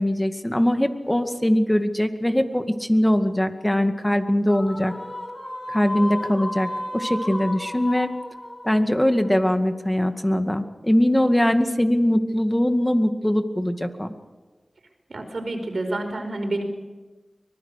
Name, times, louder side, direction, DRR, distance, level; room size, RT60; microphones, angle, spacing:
voice 1, 0.0-4.9 5.7-8.1 8.6-14.1, left 1 dB, 15° left, 7 dB, 2.1 m, -21 dB
sound 1, 4.5-9.9, left 1 dB, 35° left, 6.2 m, -33 dB
voice 2, 15.1-16.6, right 2 dB, 70° right, 5 dB, 4.9 m, -28 dB
24.0 x 20.0 x 6.7 m, 1.3 s
cardioid pair, 45°, 0 cm